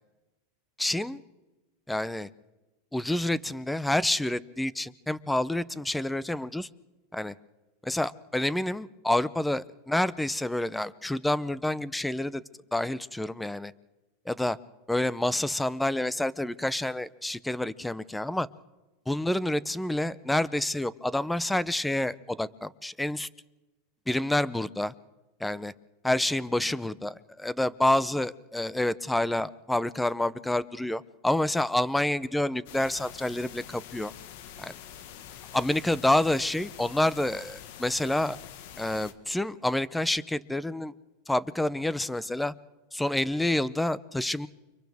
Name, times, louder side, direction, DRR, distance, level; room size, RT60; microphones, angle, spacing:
voice 1, 0.8-1.2 1.9-2.3 2.9-6.7 7.1-7.3 7.8-12.4 12.7-13.7 14.3-14.6 14.9-18.5 19.1-23.3 24.1-24.9 25.4-25.7 26.0-34.1 34.6-34.7 35.5-38.4 38.8-40.9 41.3-42.5 42.9-44.5, left 1 dB, 5° left, 19 dB, 0.6 m, -28 dB
sound 1, 32.7-39.1, left 10 dB, 65° left, 1.5 m, -46 dB
29.5 x 24.5 x 3.5 m, 1.1 s
supercardioid pair, 135°, 0 cm